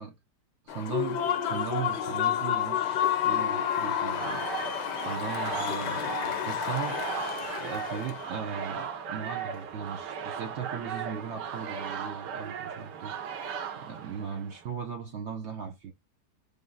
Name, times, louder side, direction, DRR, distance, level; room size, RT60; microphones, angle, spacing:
Human voice / Cheering / Applause, 0.7-8.3, left 9 dB, 90° left, 1.4 m, -30 dB
voice 1, 0.7-4.5 5.0-7.3 7.6-13.2 13.8-15.9, right 7 dB, 65° right, 0.6 m, -38 dB
sound 1, 4.2-14.6, right 7 dB, 85° right, 1.4 m, -37 dB
5.4 x 2.0 x 3.8 m
omnidirectional pair, 1.8 m